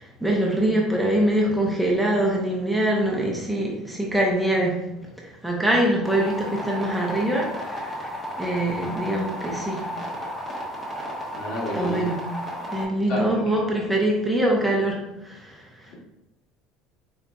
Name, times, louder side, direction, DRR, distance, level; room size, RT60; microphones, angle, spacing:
voice 1, 0.0-4.8 5.2-9.8 11.7-12.2 12.7-15.9, right 1 dB, 5° right, -2 dB, 0.7 m, -24 dB
sound 1, 6.0-12.8, equal, 20° left, 1.0 m, -33 dB
voice 2, 11.3-12.0 13.1-13.6, equal, 60° left, -3 dB, 1.3 m, -30 dB
3.8 x 3.7 x 2.3 m, 0.95 s
cardioid pair, 125°, 0 cm